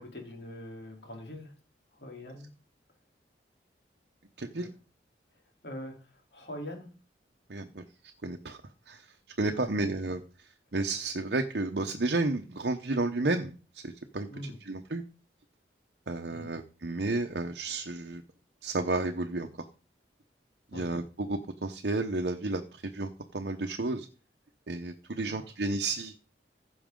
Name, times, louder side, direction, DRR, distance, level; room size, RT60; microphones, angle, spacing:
voice 1, 0.0-1.5 1.9-2.5 4.5-4.7 5.6-6.9 9.5-9.9 14.3-14.6 16.3-16.5 20.7-20.9 25.2-25.5, left 1 dB, 65° left, 0 dB, 3.5 m, -43 dB
voice 2, 7.5-7.8 8.2-8.6 8.9-9.1 9.4-14.3 14.6-15.0 16.1-18.2 18.6-19.5 20.7-24.1 24.7-26.1, right 2 dB, 65° right, 4 dB, 0.9 m, -32 dB
15.5 x 6.2 x 3.8 m, 0.37 s
head